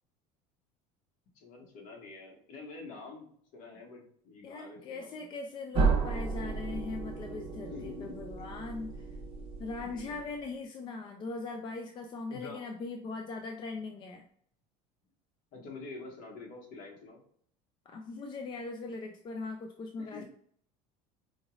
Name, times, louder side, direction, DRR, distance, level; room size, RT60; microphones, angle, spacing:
voice 1, 1.3-3.3 3.5-5.3 7.7-8.5 9.8-10.2 12.3-12.6 15.5-17.2 20.0-20.2, left 3 dB, 55° left, 0 dB, 1.6 m, -47 dB
voice 2, 4.4-9.1 9.6-14.2 17.9-20.2, left 3 dB, 30° left, 3 dB, 0.4 m, -40 dB
sound 1, 5.7-10.5, right 4 dB, 35° right, 1.1 m, -33 dB
5.1 x 3.0 x 2.4 m, 0.62 s
cardioid pair, 140°, 16 cm